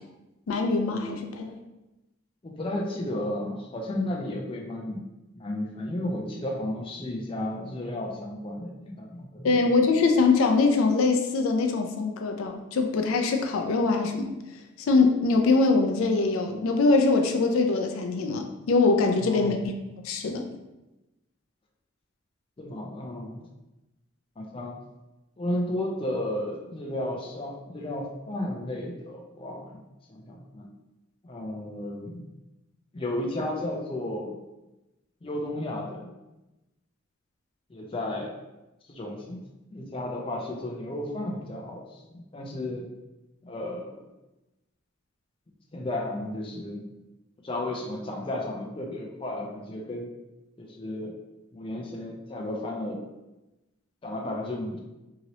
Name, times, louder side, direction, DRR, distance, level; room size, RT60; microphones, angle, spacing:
voice 1, 0.5-1.6 9.4-14.3 14.8-19.7 20.0-20.4, left 3 dB, 85° left, 4 dB, 0.4 m, -23 dB
voice 2, 2.4-5.0 5.3-9.6 19.2-19.7 22.6-23.5 24.4-24.8 25.4-30.7 31.2-32.3 32.9-34.3 35.2-36.1 37.7-38.4 38.9-39.4 39.7-42.9 43.4-44.1 45.7-46.8 47.4-50.1 50.6-51.1 51.5-53.0 54.0-54.8, left 1 dB, 25° left, -1 dB, 0.4 m, -33 dB
2.8 x 2.7 x 2.9 m, 0.99 s
head